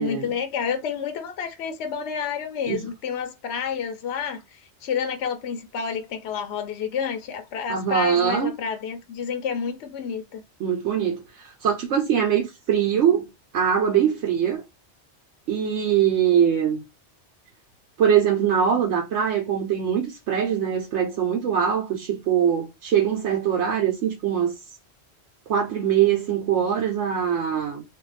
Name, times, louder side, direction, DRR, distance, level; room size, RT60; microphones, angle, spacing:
voice 1, 0.0-10.4, left 7 dB, 70° left, 0.9 m, -29 dB
voice 2, 7.7-8.5 10.6-13.3 13.5-14.6 15.5-16.8 18.0-24.5 25.5-27.8, right 8 dB, 90° right, 1.0 m, -22 dB
3.4 x 2.4 x 3.2 m
omnidirectional pair, 1.2 m